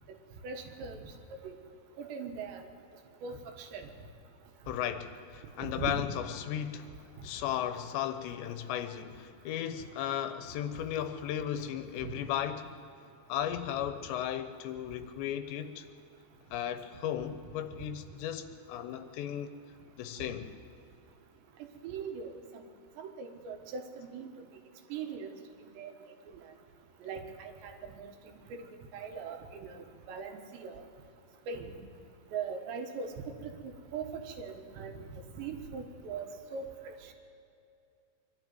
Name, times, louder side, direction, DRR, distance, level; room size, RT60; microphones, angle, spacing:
voice 1, 0.4-1.0 1.4-1.6 2.0-2.7 3.2-3.9 5.6-6.0 7.2-7.3 12.0-12.1 21.8-22.6 23.0-24.3 24.9-25.3 25.8-25.9 27.0-28.1 28.5-28.7 28.9-30.8 31.5-31.8 32.3-33.1 33.4-36.3 36.5-36.9, right 5 dB, 80° right, 4 dB, 3.6 m, -40 dB
voice 2, 4.7-6.9 7.2-12.7 13.3-15.9 16.5-19.5 20.0-20.5, left 10 dB, 85° left, 9 dB, 3.1 m, -35 dB
23.0 x 12.5 x 9.3 m, 2.5 s
omnidirectional pair, 5.1 m